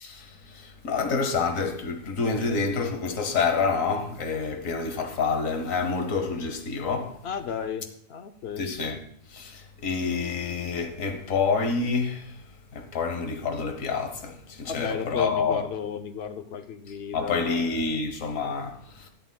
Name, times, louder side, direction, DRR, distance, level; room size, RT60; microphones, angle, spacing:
voice 1, 0.0-7.2 8.6-9.0 9.3-12.4 12.7-15.6 17.1-19.1, left 4 dB, 85° left, 1.6 m, -28 dB
voice 2, 7.2-8.7 14.6-18.1, left 7 dB, 55° left, 0.9 m, -34 dB
13.0 x 10.0 x 2.3 m
omnidirectional pair, 1.3 m